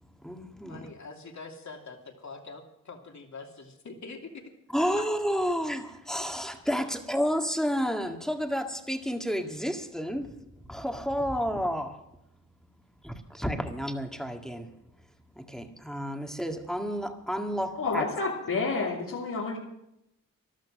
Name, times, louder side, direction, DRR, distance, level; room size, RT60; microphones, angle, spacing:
voice 1, 0.0-0.9 4.7-10.3 10.7-12.0 13.0-14.7 15.4-18.1, equal, ahead, 1.9 m, -31 dB
voice 2, 0.7-4.5 4.8-5.0, left 4 dB, 55° left, 2.8 m, -44 dB
voice 3, 17.7-19.6, left 4 dB, 80° left, 3.0 m, -29 dB
14.0 x 12.0 x 6.4 m
cardioid pair, 65°, 33 cm